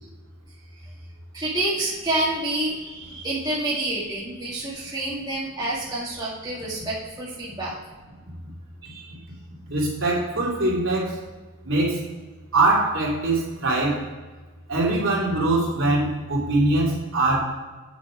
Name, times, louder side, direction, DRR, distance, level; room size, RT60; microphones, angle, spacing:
voice 1, 1.3-7.7 8.8-9.1, right 1 dB, 20° right, -7 dB, 1.7 m, -28 dB
voice 2, 9.7-11.2 11.6-12.0 12.5-14.0 14.7-17.4, right 2 dB, 65° right, -4 dB, 2.7 m, -22 dB
8.5 x 5.1 x 4.9 m, 1.3 s
head